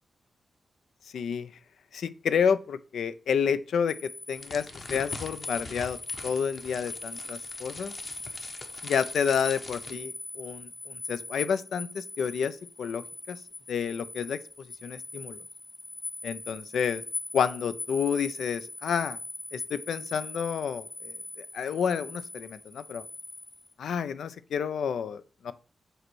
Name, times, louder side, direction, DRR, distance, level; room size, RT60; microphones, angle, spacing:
voice 1, 1.1-1.5 1.9-6.0 6.2-7.9 8.8-13.4 13.7-14.4 14.8-15.4 16.2-17.0 17.3-19.2 19.5-23.0 23.8-25.5, left 7 dB, 90° left, 0.5 m, -30 dB
sound 1, 3.9-23.7, left 3 dB, 25° left, 0.4 m, -41 dB
sound 2, 4.4-9.9, left 3 dB, 40° left, 1.0 m, -44 dB
7.9 x 3.1 x 6.1 m
wide cardioid pair, 135°, 0 cm